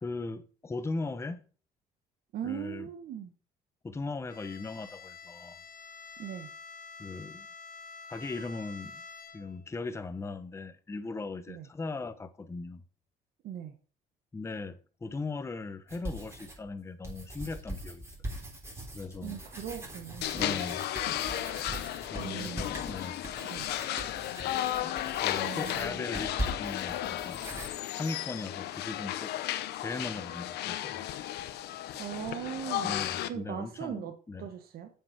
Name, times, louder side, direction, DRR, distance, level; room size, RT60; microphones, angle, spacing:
voice 1, 0.0-1.4 2.4-2.9 3.8-5.6 7.0-7.5 8.1-9.0 9.3-12.8 14.3-18.0 18.9-19.4 20.3-20.9 22.1-23.2 24.8-24.9 25.2-27.4 27.9-29.3 29.8-31.0 32.8-34.5, left 3 dB, 15° left, 0.7 m, -38 dB
voice 2, 2.3-3.3 6.2-6.5 11.5-11.7 13.4-13.7 19.2-20.6 22.0-23.0 23.4-23.7 25.4-26.0 31.9-32.9 33.2-34.1 34.4-34.9, right 9 dB, 65° right, 1.1 m, -40 dB
Bowed string instrument, 4.3-9.7, left 5 dB, 55° left, 1.7 m, -48 dB
sound 1, 15.9-16.7 17.0-27.7, right 1 dB, 15° right, 3.6 m, -41 dB
sound 2, 20.2-33.3, left 13 dB, 80° left, 0.8 m, -34 dB
7.6 x 6.7 x 5.8 m
cardioid pair, 110°, 17 cm